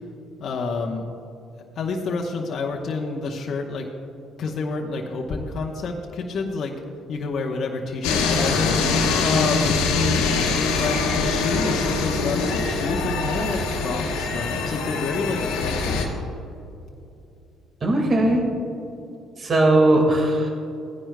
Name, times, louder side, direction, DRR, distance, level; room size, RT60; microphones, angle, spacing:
voice 1, 0.4-1.0 1.8-3.8 4.4-6.7 7.1-9.8 10.3-16.1, left 4 dB, 55° left, -1 dB, 0.9 m, -28 dB
sound 1, 8.0-16.1, left 4 dB, 85° left, 1.2 m, -23 dB
voice 2, 17.8-18.4 19.4-20.5, right 1 dB, 45° right, 2 dB, 1.8 m, -18 dB
16.5 x 10.0 x 2.2 m, 2.7 s
supercardioid pair, 60°, 0 cm